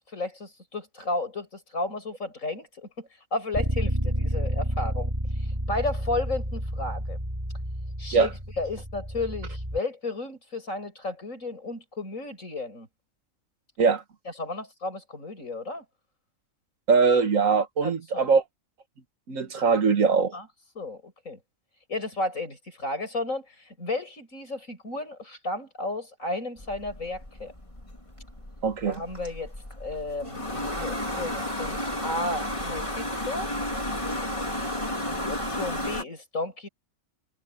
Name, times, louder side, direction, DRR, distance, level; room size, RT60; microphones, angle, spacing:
voice 1, 0.0-5.1 5.7-7.2 8.0-12.9 14.4-15.8 17.8-18.2 20.3-20.5 20.8-21.4 21.9-23.5 23.8-27.5 28.8-29.5 29.8-33.5 35.2-36.7, left 2 dB, 85° left, 7.7 m, -33 dB
Bass guitar, 3.5-9.8, equal, 20° right, 6.3 m, -30 dB
voice 2, 16.9-18.4 19.3-20.4 28.6-29.0, right 5 dB, 85° right, 1.9 m, -22 dB
sound 1, 26.6-36.0, left 1 dB, 25° left, 3.7 m, -33 dB
omnidirectional pair, 1.3 m